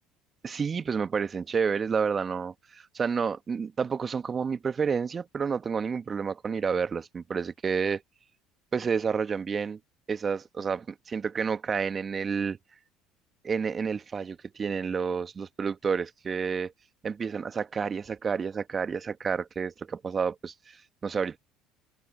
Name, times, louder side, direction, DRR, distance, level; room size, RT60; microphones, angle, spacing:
voice 1, 0.4-8.0 8.7-9.8 10.1-12.6 13.4-16.7 17.0-21.4, right 6 dB, 35° right, 1.5 m, -30 dB
hypercardioid pair, 65°, 0 cm